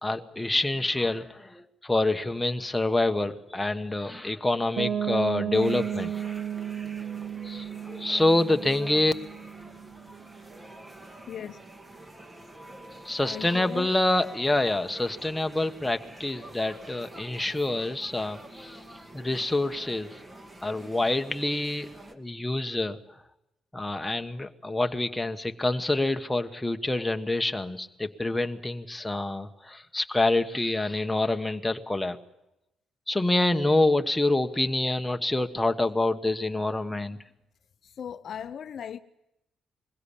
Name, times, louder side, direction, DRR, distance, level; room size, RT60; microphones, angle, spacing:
voice 1, 0.0-6.3 7.4-9.1 13.0-18.8 19.1-20.2 20.6-23.0 23.7-32.2 33.1-37.2, left 2 dB, 10° left, 1.2 m, -27 dB
Piano, 4.8-10.5, right 9 dB, 55° right, 1.0 m, -33 dB
sound 1, 5.5-22.1, right 1 dB, 25° right, 2.1 m, -47 dB
voice 2, 11.3-11.6 13.2-13.9 37.8-39.0, left 8 dB, 60° left, 0.7 m, -38 dB
21.5 x 16.5 x 8.5 m
cardioid pair, 90°, 0 cm